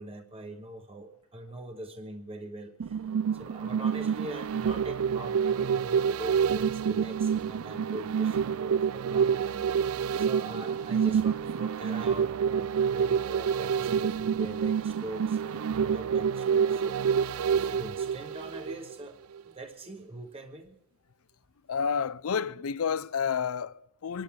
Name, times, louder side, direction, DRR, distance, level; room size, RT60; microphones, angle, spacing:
voice 1, 0.0-3.0 3.3-9.9 10.2-19.2 19.4-20.8, right 1 dB, 25° right, 1.0 m, -42 dB
sound 1, 2.8-19.0 19.4-19.5, right 7 dB, 80° right, 0.4 m, -28 dB
voice 2, 21.7-24.2, left 6 dB, 85° left, 0.5 m, -30 dB
25.5 x 12.0 x 3.7 m
head